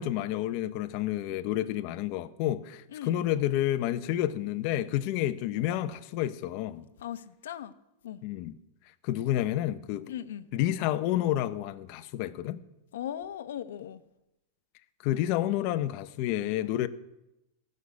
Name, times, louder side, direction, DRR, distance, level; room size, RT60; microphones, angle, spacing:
voice 1, 0.0-6.9 8.2-8.5 9.0-10.1 10.5-12.6 15.0-16.9, left 13 dB, 45° left, 0.8 m, -29 dB
voice 2, 2.9-3.2 7.0-7.7 8.0-8.2 10.1-10.5 12.9-14.0, left 10 dB, 80° left, 0.9 m, -38 dB
15.0 x 6.6 x 9.5 m
supercardioid pair, 155°, 0 cm